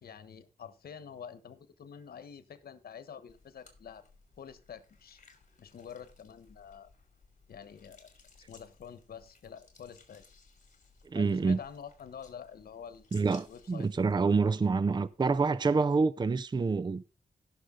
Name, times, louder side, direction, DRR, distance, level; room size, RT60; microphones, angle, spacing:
voice 1, 0.0-4.0 4.4-5.2 5.6-6.9 7.5-8.1 8.5-10.2 11.1-13.1 13.5-13.9, left 7 dB, 85° left, 1.2 m, -47 dB
sound 1, 3.3-15.5, left 4 dB, 55° left, 2.9 m, -61 dB
voice 2, 11.1-11.6 13.1-17.1, right 4 dB, 30° right, 0.5 m, -27 dB
16.5 x 6.4 x 3.8 m
cardioid pair, 85°, 15 cm